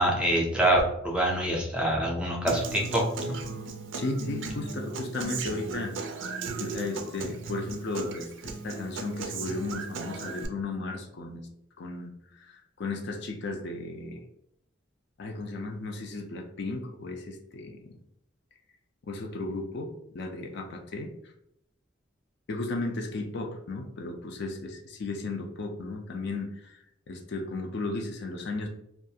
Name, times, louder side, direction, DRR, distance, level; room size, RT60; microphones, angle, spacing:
voice 1, 0.0-3.4, right 1 dB, 5° right, -1 dB, 0.4 m, -25 dB
Human voice / Acoustic guitar, 2.5-10.5, right 4 dB, 70° right, 0.4 m, -36 dB
voice 2, 3.9-6.1 6.6-11.5 11.8-14.2 15.2-18.0 19.0-21.1 22.5-26.8 27.1-28.7, left 2 dB, 60° left, 4 dB, 0.4 m, -35 dB
2.5 x 2.3 x 2.7 m, 0.76 s
head